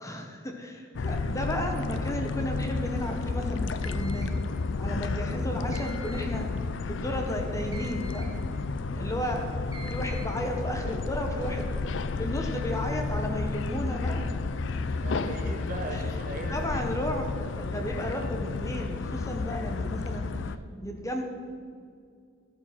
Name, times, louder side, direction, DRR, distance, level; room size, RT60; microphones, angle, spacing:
voice 1, 0.0-4.4 4.8-6.5 6.9-8.3 8.9-9.6 9.9-14.3 15.9-16.0 16.5-20.3 20.8-21.2, equal, 15° left, 2 dB, 0.9 m, -33 dB
sound 1, 0.9-20.6, left 3 dB, 65° left, 0.5 m, -31 dB
sound 2, 3.8-4.4 5.7-6.4 7.7-8.4 9.7-10.4, right 1 dB, 20° right, 1.4 m, -46 dB
voice 2, 14.8-16.9, right 1 dB, 45° right, 2 dB, 1.6 m, -39 dB
13.5 x 6.8 x 5.8 m, 2.2 s
head